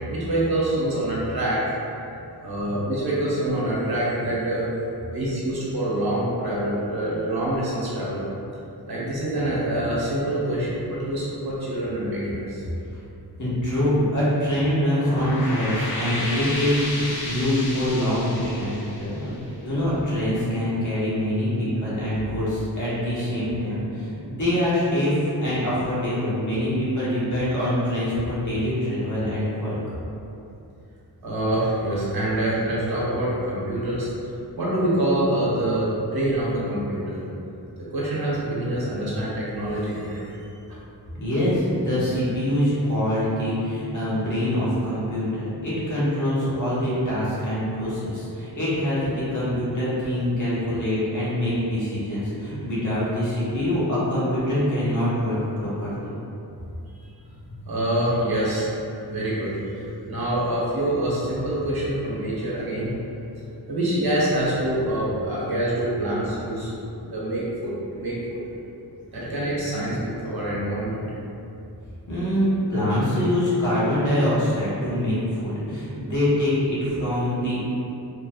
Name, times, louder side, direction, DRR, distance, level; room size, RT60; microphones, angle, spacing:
voice 1, 0.0-1.6 2.4-4.6 5.1-8.2 8.9-12.6 21.8-22.0 31.2-34.1 34.6-37.2 37.9-40.3 57.0-57.1 57.7-58.7 59.0-62.9 63.7-66.7 67.1-68.4 69.1-71.0, right 1 dB, 65° right, -8 dB, 1.1 m, -25 dB
voice 2, 13.4-29.8 41.2-56.1 72.1-77.6, left 1 dB, 50° left, -10 dB, 1.3 m, -24 dB
sound 1, 14.8-20.0, left 1 dB, 65° left, 0.7 m, -33 dB
4.6 x 3.1 x 2.4 m, 2.8 s
wide cardioid pair, 175°, 39 cm